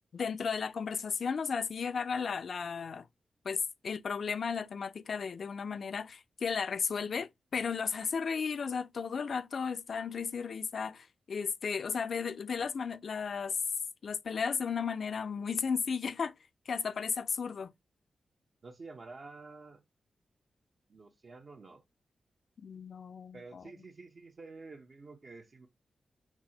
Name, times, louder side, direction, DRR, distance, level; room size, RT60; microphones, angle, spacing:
voice 1, 0.1-3.1 3.4-13.6 14.0-16.3 16.7-17.7 22.6-23.6, left 6 dB, 70° left, 0.4 m, -34 dB
voice 2, 18.6-19.8 20.9-21.8 23.3-25.7, right 3 dB, 60° right, 0.7 m, -49 dB
6.0 x 2.0 x 2.7 m
cardioid pair, 55°, 0 cm